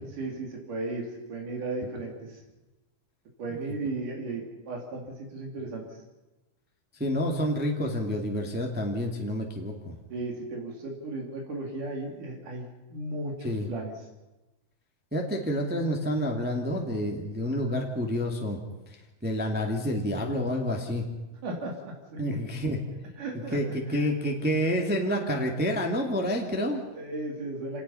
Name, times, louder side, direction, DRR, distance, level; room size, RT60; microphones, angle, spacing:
voice 1, 0.0-2.4 3.4-5.8 10.1-13.9 21.4-22.4 23.2-24.1 26.9-27.8, right 2 dB, 80° right, 0 dB, 4.5 m, -35 dB
voice 2, 7.0-10.0 13.4-13.7 15.1-18.6 19.2-21.0 22.2-22.8 23.5-26.8, equal, 5° right, 1 dB, 1.8 m, -28 dB
28.0 x 18.5 x 5.7 m, 1.1 s
omnidirectional pair, 3.6 m